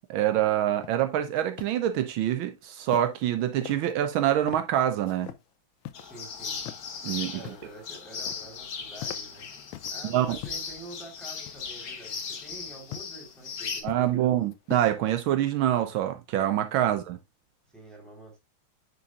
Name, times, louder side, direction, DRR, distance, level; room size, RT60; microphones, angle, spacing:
voice 1, 0.0-5.3 7.0-7.4 10.0-10.4 13.8-17.2, right 11 dB, 80° right, 1.4 m, -26 dB
sound 1, 0.8-1.0 1.4-1.8 2.8-3.3 3.6-4.2 4.5-4.7 5.1-5.4 5.8-6.1 6.5-6.8 7.1-7.7 8.0-8.6 8.9-10.0 10.4-10.8 11.5-11.9 12.9-13.2 13.6-14.2 14.5-15.0, left 13 dB, 85° left, 1.4 m, -42 dB
sound 2, 5.9-13.8, left 5 dB, 50° left, 1.4 m, -37 dB
voice 2, 6.0-6.6 7.3-9.5 9.9-14.2 17.7-18.4, right 2 dB, ahead, 3.5 m, -47 dB
9.4 x 5.5 x 2.4 m
omnidirectional pair, 2.2 m